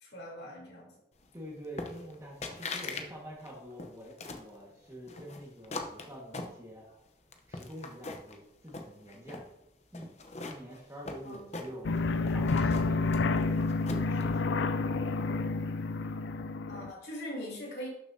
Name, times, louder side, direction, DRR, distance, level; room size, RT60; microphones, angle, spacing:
voice 1, 0.0-0.9 11.2-11.5 16.7-17.9, equal, 65° left, -3 dB, 3.2 m, -41 dB
voice 2, 1.3-6.9 7.5-9.4 9.9-11.9 12.3-13.5 13.9-14.5, equal, 15° right, -3 dB, 1.6 m, -46 dB
sound 1, 1.8-2.2 2.4-3.1 3.4-4.5 5.1-7.0 7.3-8.4 8.7-9.5 9.9-12.0 12.3-14.2, left 3 dB, 35° left, 0.8 m, -41 dB
sound 2, 11.8-16.9, left 3 dB, 80° left, 0.4 m, -29 dB
12.0 x 6.5 x 2.8 m, 0.82 s
head